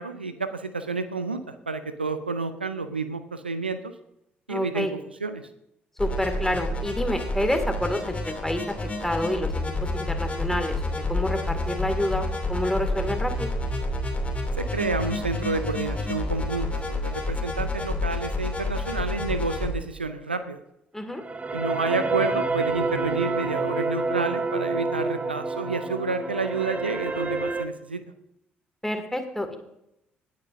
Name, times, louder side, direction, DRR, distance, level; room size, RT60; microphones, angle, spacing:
voice 1, 0.0-3.9 4.5-4.9 5.2-5.5 14.6-20.6 21.5-28.0, right 3 dB, 90° right, 11 dB, 0.5 m, -30 dB
voice 2, 4.5-4.9 6.0-8.6 9.0-9.5 9.9-13.5 20.9-21.2 28.8-29.6, left 1 dB, 5° left, 6 dB, 2.2 m, -28 dB
sound 1, 6.0-19.7, left 2 dB, 25° left, 2.8 m, -29 dB
sound 2, 21.1-27.6, right 3 dB, 25° right, 1.1 m, -28 dB
18.0 x 9.3 x 2.6 m, 0.82 s
figure-of-eight pair, 50°, 5 cm